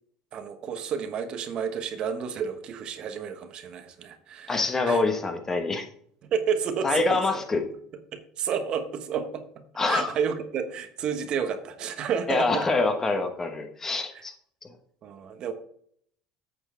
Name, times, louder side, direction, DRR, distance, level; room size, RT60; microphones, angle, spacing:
voice 1, 0.3-5.0 6.2-7.2 8.1-12.7 14.1-14.2 15.0-15.5, right 7 dB, 45° right, 8 dB, 1.1 m, -31 dB
voice 2, 4.5-5.9 6.8-7.6 9.8-10.1 12.3-14.3, left 3 dB, 20° left, 6 dB, 1.2 m, -25 dB
8.6 x 4.5 x 6.9 m, 0.64 s
supercardioid pair, 120°, 2 cm